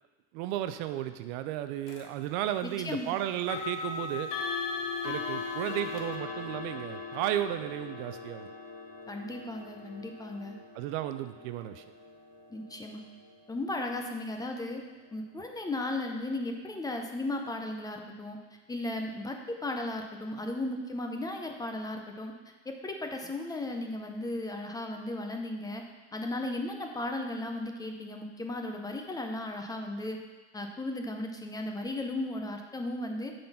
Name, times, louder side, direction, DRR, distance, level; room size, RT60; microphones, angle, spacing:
voice 1, 0.3-4.3 5.0-8.5 10.7-11.8, right 12 dB, 55° right, 10 dB, 0.5 m, -34 dB
sound 1, 1.9-2.1 3.4-14.3, left 5 dB, 45° left, 1.0 m, -39 dB
voice 2, 2.6-3.1 9.1-10.6 12.5-13.0 13.5-14.8 15.1-18.4 18.7-22.3 22.7-25.8 26.1-30.2 30.5-33.3, left 2 dB, 10° left, 3 dB, 0.5 m, -35 dB
7.5 x 4.1 x 5.6 m, 1.3 s
supercardioid pair, 120°, 35 cm